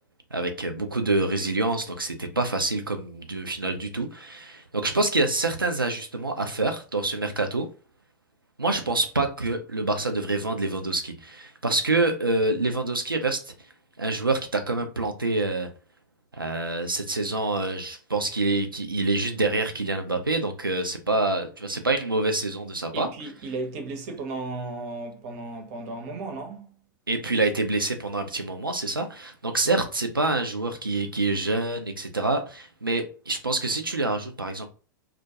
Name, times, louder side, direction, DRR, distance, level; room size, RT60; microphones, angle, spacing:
voice 1, 0.3-7.7 8.6-13.5 14.0-15.7 16.3-23.1 27.1-34.7, right 2 dB, 90° right, 0.4 m, -26 dB
voice 2, 22.9-26.7, right 3 dB, 45° right, 0.7 m, -35 dB
2.3 x 2.1 x 2.7 m
figure-of-eight pair, 95°, 11 cm